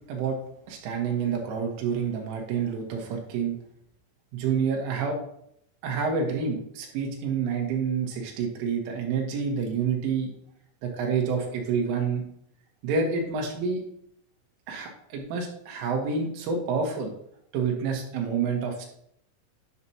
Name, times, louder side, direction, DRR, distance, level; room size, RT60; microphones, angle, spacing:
voice 1, 0.7-3.6 4.3-5.2 5.8-10.3 10.8-12.2 12.8-13.8 14.7-17.1 17.5-18.9, right 5 dB, 75° right, 1 dB, 3.7 m, -28 dB
11.0 x 6.0 x 2.8 m, 0.71 s
omnidirectional pair, 5.9 m